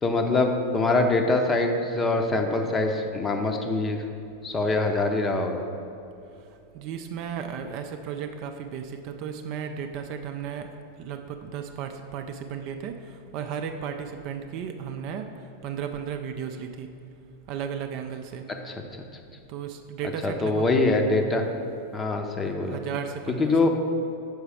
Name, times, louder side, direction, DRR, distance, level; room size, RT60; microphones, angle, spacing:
voice 1, 0.0-4.0 4.4-5.6 18.7-18.8 20.2-21.4 21.9-22.8 23.4-23.7, left 2 dB, 20° left, 4 dB, 0.7 m, -24 dB
voice 2, 6.7-10.7 11.0-16.9 17.5-18.4 19.5-20.7 22.4-23.7, right 7 dB, 40° right, 6 dB, 0.4 m, -35 dB
6.4 x 4.8 x 4.8 m, 2.7 s
figure-of-eight pair, 90°, 0 cm